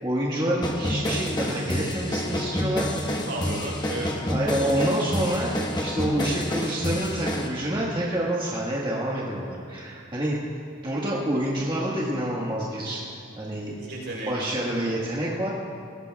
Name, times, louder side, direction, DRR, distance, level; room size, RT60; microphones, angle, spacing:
voice 1, 0.0-2.9 4.3-5.5 5.8-10.4 10.8-13.0 13.4-13.8 14.3-15.5, right 1 dB, 25° right, -6 dB, 1.5 m, -27 dB
sound 1, 0.6-7.5, equal, 20° left, 1.2 m, -28 dB
voice 2, 3.3-4.2 13.8-14.6 14.9-15.0, right 2 dB, 60° right, -2 dB, 4.0 m, -34 dB
21.0 x 17.5 x 2.3 m, 2.3 s
head